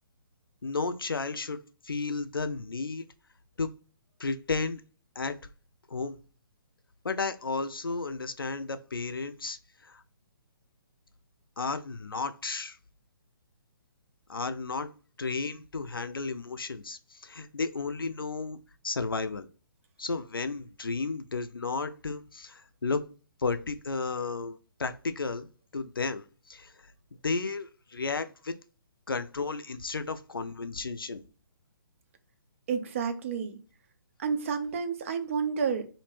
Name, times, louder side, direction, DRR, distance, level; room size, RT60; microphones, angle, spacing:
voice 1, 0.6-1.6 1.8-3.1 3.6-3.7 4.2-4.8 5.2-5.4 5.9-6.2 7.0-9.6 9.8-10.0 11.6-12.8 14.3-14.9 15.2-18.6 18.8-19.5 20.0-23.0 23.4-25.5 25.7-26.7 27.2-28.5 29.1-31.2, left 4 dB, 80° left, 0.4 m, -33 dB
voice 2, 32.7-33.6 34.2-35.9, right 6 dB, 35° right, 0.4 m, -30 dB
2.5 x 2.1 x 3.1 m
figure-of-eight pair, 130°, 12 cm